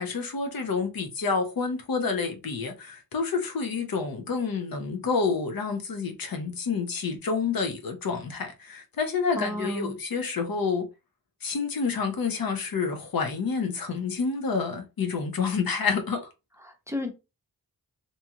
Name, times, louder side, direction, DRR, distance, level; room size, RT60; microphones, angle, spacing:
voice 1, 0.0-10.9 11.4-16.3, left 5 dB, 70° left, 0.7 m, -28 dB
voice 2, 9.4-10.0 16.6-17.1, left 1 dB, 10° right, 0.6 m, -32 dB
2.7 x 2.4 x 2.8 m
wide cardioid pair, 90°, 37 cm